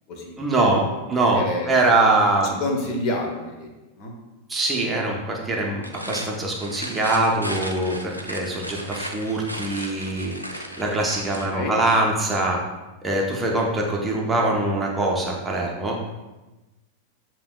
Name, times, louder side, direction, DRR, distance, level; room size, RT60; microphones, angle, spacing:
voice 1, 0.4-1.4 1.7-2.6 4.5-12.6 13.0-16.0, right 2 dB, 15° right, -1 dB, 0.6 m, -23 dB
voice 2, 1.3-1.7 2.6-3.7 3.9-4.1 11.4-11.8, left 2 dB, 40° left, 1 dB, 0.9 m, -28 dB
sound 1, 5.7-11.5, equal, 90° right, 0.4 m, -35 dB
6.8 x 2.9 x 2.2 m, 1.1 s
figure-of-eight pair, 90°, 0 cm